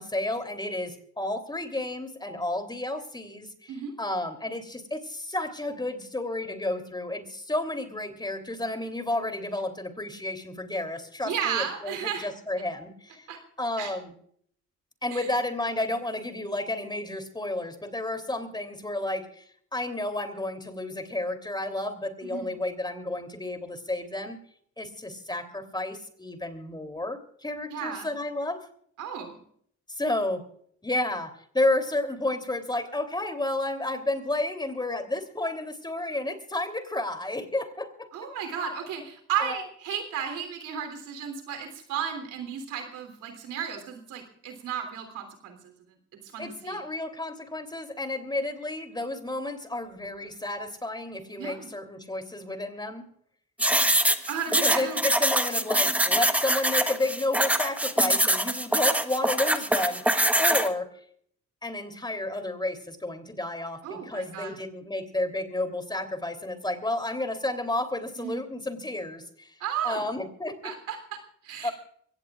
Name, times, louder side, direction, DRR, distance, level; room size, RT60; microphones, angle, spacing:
voice 1, 0.0-3.7 4.0-13.3 13.6-14.1 15.0-19.5 19.7-24.4 24.8-28.7 29.9-30.4 30.8-38.1 39.4-39.6 46.4-53.0 54.1-54.2 54.6-60.0 60.4-60.9 61.6-69.5 69.8-70.6 71.6-71.7, left 2 dB, 15° left, 7 dB, 3.1 m, -31 dB
voice 2, 11.2-12.3 13.3-13.4 13.8-13.9 15.1-15.3 22.2-22.5 27.7-28.1 29.0-29.4 38.1-45.7 46.3-46.8 51.4-51.7 54.3-55.0 58.0-58.2 63.8-64.6 68.2-68.4 69.6-70.0 70.6-71.7, right 8 dB, 90° right, 6 dB, 3.3 m, -34 dB
sound 1, 53.6-60.7, right 1 dB, 5° right, 1.2 m, -24 dB
24.0 x 17.5 x 2.4 m, 0.62 s
cardioid pair, 90°, 30 cm